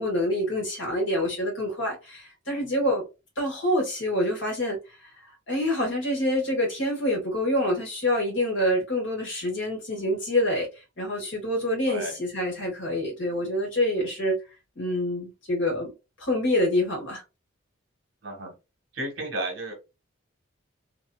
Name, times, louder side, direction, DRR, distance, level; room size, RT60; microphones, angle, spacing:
voice 1, 0.0-3.0 3.4-14.4 14.7-17.2, left 1 dB, 60° left, 1.5 m, -26 dB
voice 2, 18.2-18.5 18.9-19.7, right 1 dB, 60° right, 1.0 m, -32 dB
2.6 x 2.5 x 2.2 m
head